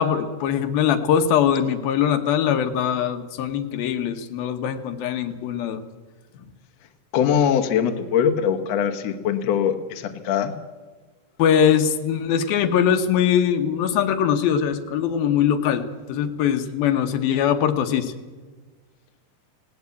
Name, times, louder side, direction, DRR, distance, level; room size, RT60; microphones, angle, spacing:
voice 1, 0.0-5.8 11.4-18.1, left 8 dB, 80° left, 8 dB, 2.9 m, -22 dB
voice 2, 7.1-10.5, left 8 dB, 60° left, 6 dB, 1.9 m, -22 dB
18.5 x 18.0 x 8.3 m, 1.4 s
omnidirectional pair, 4.2 m